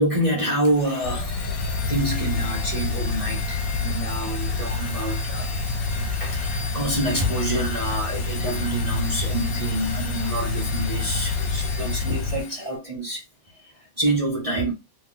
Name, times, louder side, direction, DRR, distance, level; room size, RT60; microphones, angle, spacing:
voice 1, 0.0-5.5 6.0-13.2 13.6-14.7, right 1 dB, 60° right, 0.3 m, -27 dB
Domestic sounds home sounds, 0.6-12.7, left 4 dB, 55° left, 1.0 m, -36 dB
sound 1, 1.0-12.4, left 3 dB, 80° left, 1.2 m, -28 dB
2.8 x 2.7 x 3.7 m
omnidirectional pair, 1.9 m